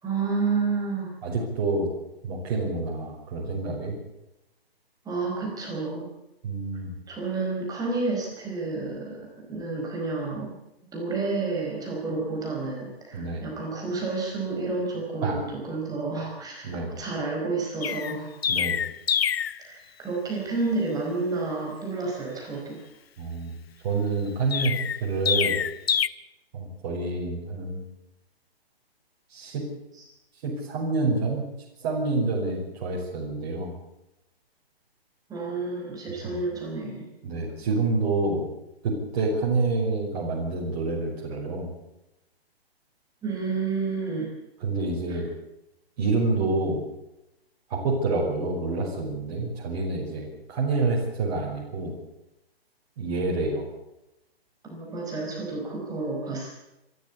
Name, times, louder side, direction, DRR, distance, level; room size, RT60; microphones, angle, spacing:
voice 1, 0.0-1.1 5.0-6.1 7.1-10.6 10.9-16.7 17.0-18.3 19.6-22.9 30.0-30.1 35.3-37.1 43.2-44.3 45.1-45.2 54.7-56.5, right 3 dB, 10° right, -1 dB, 4.9 m, -30 dB
voice 2, 1.2-1.9 2.2-4.0 6.4-6.9 13.1-13.4 15.2-15.4 16.6-16.9 18.5-18.8 23.2-23.6 23.8-25.6 26.5-27.8 29.3-29.6 30.4-31.5 31.8-33.7 36.2-36.4 37.2-38.5 38.8-41.7 44.6-45.3 46.0-46.8 47.7-52.0 53.0-53.7, right 3 dB, 40° right, -3 dB, 5.7 m, -27 dB
Chirp tweet, 17.8-19.6 24.5-26.1, left 8 dB, 75° left, 0.9 m, -26 dB
27.0 x 13.0 x 8.4 m, 0.91 s
hypercardioid pair, 145°, 31 cm